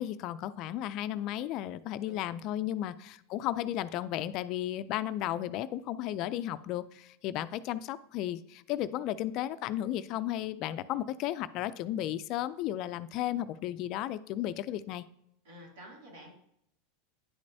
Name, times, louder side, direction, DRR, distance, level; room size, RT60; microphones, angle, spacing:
voice 1, 0.0-15.0, left 12 dB, 50° left, 14 dB, 0.4 m, -34 dB
voice 2, 15.4-16.3, equal, 75° right, -1 dB, 2.7 m, -49 dB
10.0 x 5.3 x 2.7 m, 0.75 s
hypercardioid pair, 105°, 0 cm